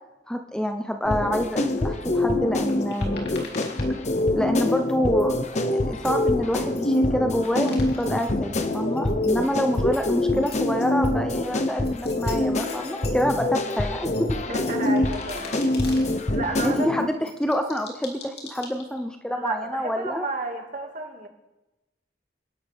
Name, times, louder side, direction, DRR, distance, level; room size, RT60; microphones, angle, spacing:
voice 1, 0.3-3.3 4.3-5.4 5.7-14.3 16.6-20.3, equal, 5° left, 5 dB, 0.7 m, -27 dB
sound 1, 1.1-17.1, left 2 dB, 40° left, 0.9 m, -25 dB
sound 2, 1.8-4.4 4.7-7.0 7.3-8.3 8.6-11.1 11.5-13.3 13.6-16.2 16.6-19.0, left 4 dB, 65° left, 3.0 m, -44 dB
voice 2, 14.4-15.6 16.3-17.1 19.3-21.3, right 2 dB, 50° right, 3 dB, 2.1 m, -32 dB
27.5 x 11.5 x 3.5 m, 1.0 s
head